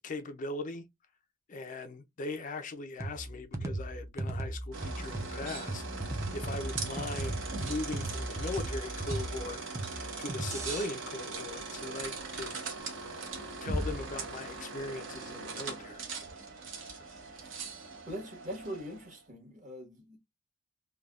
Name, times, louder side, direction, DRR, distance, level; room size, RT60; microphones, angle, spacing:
voice 1, 0.0-0.9 1.5-5.8 6.3-9.6 10.2-12.6 13.6-16.1, left 2 dB, 40° left, 0.4 m, -39 dB
sound 1, 3.0-10.9, right 1 dB, 15° right, 0.5 m, -37 dB
sound 2, 4.7-19.1, right 3 dB, 65° right, 0.9 m, -40 dB
voice 2, 18.1-20.2, equal, 40° right, 1.3 m, -42 dB
3.3 x 2.2 x 2.3 m
head